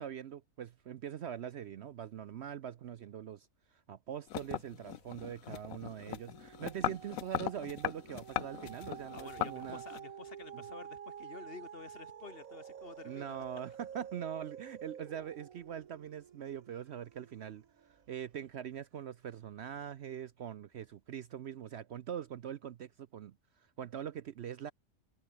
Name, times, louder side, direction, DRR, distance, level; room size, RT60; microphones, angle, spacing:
voice 1, 0.0-3.5 3.9-9.8 10.5-10.6 13.0-17.6 18.1-23.3 23.8-24.7, right 9 dB, 60° right, 0.8 m, -42 dB
sound 1, 4.3-10.0, left 13 dB, 80° left, 1.1 m, -39 dB
sound 2, 4.8-5.3 5.7-18.1 18.7-18.8, right 8 dB, 85° right, 1.6 m, -50 dB
voice 2, 9.1-13.4, left 5 dB, 45° left, 1.4 m, -50 dB
omnidirectional pair, 1.4 m